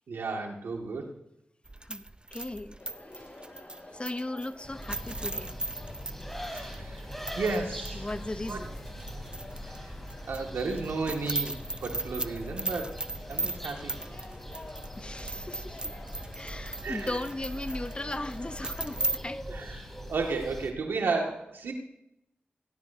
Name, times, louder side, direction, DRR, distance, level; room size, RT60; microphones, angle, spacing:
voice 1, 0.1-1.1 6.4-7.1 7.4-8.1 8.4-8.6 9.7-9.9 10.3-13.0 13.3-13.9 16.8-17.2 19.5-21.7, right 4 dB, 90° right, 2 dB, 2.0 m, -33 dB
sound 1, 1.7-7.6 7.9-8.0 8.5-9.8 10.1-19.2, right 2 dB, 25° right, 0.6 m, -37 dB
voice 2, 2.3-2.8 3.9-5.5 7.9-8.7 13.4-13.6 15.0-15.9 16.3-19.6, left 2 dB, 30° left, 11 dB, 0.8 m, -37 dB
sound 2, 2.8-19.1, left 1 dB, 45° left, 5.7 m, -49 dB
sound 3, 4.6-20.7, equal, 5° left, 3.3 m, -42 dB
18.0 x 17.0 x 2.8 m, 0.78 s
cardioid pair, 40°, 4 cm